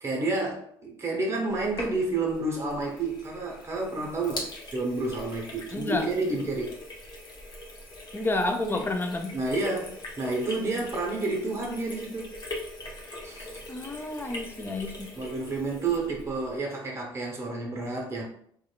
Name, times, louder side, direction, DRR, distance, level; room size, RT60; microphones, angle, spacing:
voice 1, 0.0-6.7 9.3-12.3 13.2-13.6 15.1-18.2, right 3 dB, 20° right, -1 dB, 0.8 m, -30 dB
Sink (filling or washing), 1.5-16.6, left 1 dB, 35° left, 0.8 m, -41 dB
voice 2, 5.7-6.1 8.1-9.4 13.7-15.1, left 2 dB, 15° left, 5 dB, 0.4 m, -30 dB
2.8 x 2.3 x 2.3 m, 0.66 s
hypercardioid pair, 55°, 12 cm